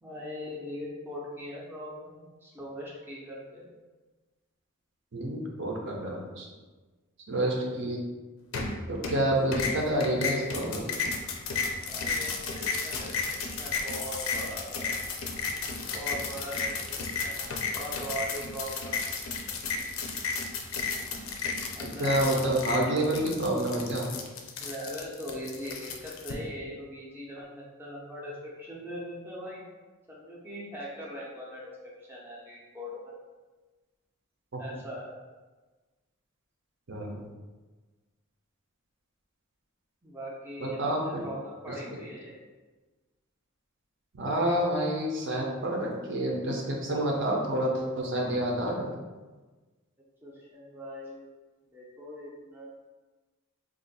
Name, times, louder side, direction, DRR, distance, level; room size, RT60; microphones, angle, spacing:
voice 1, 0.0-3.6 11.8-14.9 15.9-19.3 21.7-22.2 24.6-29.6 30.1-31.7 32.0-33.1 34.6-35.2 40.0-42.4 50.2-51.3 51.7-52.7, equal, 10° right, -5 dB, 0.5 m, -41 dB
voice 2, 5.1-6.5 7.3-8.0 8.9-11.0 22.0-24.1 34.5-34.6 36.9-37.2 40.6-41.2 44.2-48.9, right 1 dB, 55° right, -1 dB, 0.6 m, -28 dB
sound 1, 8.5-9.2 9.5-26.3, left 4 dB, 65° left, 0.4 m, -33 dB
2.5 x 2.3 x 4.0 m, 1.3 s
head